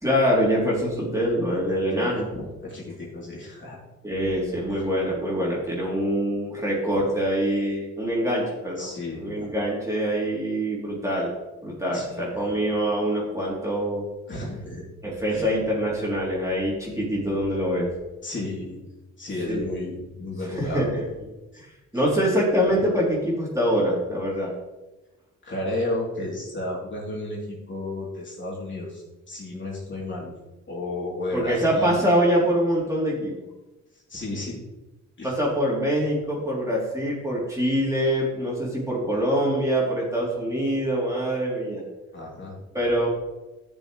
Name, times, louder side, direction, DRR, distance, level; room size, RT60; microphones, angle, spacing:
voice 1, 0.0-2.3 4.0-8.9 9.2-11.3 11.6-14.0 15.0-17.9 19.5-20.0 20.6-21.0 21.5-24.5 31.3-33.4 35.2-41.8 42.7-43.1, equal, 10° right, -5 dB, 3.4 m, -24 dB
voice 2, 1.9-3.8 4.7-4.8 8.8-9.5 11.9-12.3 14.3-14.8 15.3-15.5 18.2-18.8 19.2-20.8 21.9-22.0 25.4-30.3 30.7-32.1 34.1-34.6 35.2-35.3 42.1-42.5, left 2 dB, 40° left, -5 dB, 3.5 m, -33 dB
12.5 x 7.0 x 3.3 m, 1.1 s
cardioid pair, 90°, 29 cm